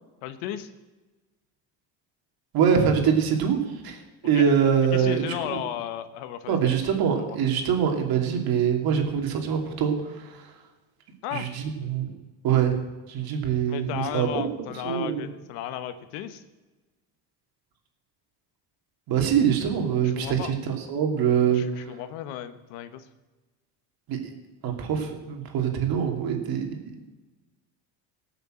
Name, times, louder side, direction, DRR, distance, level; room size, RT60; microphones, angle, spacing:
voice 1, 0.2-0.7 4.3-4.5 4.9-6.7 7.1-7.4 11.2-11.5 13.7-16.4 20.0-20.6 21.5-23.1, left 11 dB, 85° left, 11 dB, 1.3 m, -34 dB
voice 2, 2.5-5.2 5.5-5.6 6.5-10.3 11.3-12.1 12.4-15.3 19.1-21.6 24.1-24.2 24.6-26.6, right 8 dB, 55° right, 3 dB, 2.8 m, -24 dB
17.5 x 6.9 x 7.7 m, 1.2 s
cardioid pair, 135°, 44 cm